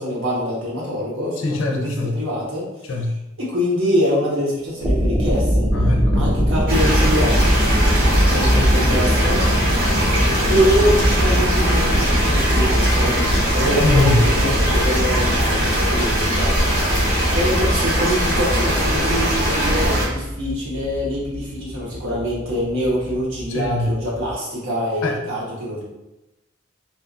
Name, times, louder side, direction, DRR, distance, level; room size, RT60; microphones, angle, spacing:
voice 1, 0.0-1.4 1.7-2.6 3.4-5.7 6.1-7.4 8.2-9.4 10.5-13.1 13.5-16.5 17.3-25.9, equal, 85° right, -5 dB, 1.0 m, -24 dB
voice 2, 1.4-2.2 2.8-3.1 5.7-6.5 13.8-14.2 23.5-23.9 25.0-25.2, left 2 dB, 80° left, 3 dB, 0.4 m, -22 dB
sound 1, 4.6-24.3, equal, 10° right, 0.4 m, -23 dB
sound 2, 6.7-20.1, equal, 45° right, 0.8 m, -20 dB
2.6 x 2.4 x 2.4 m, 0.96 s
head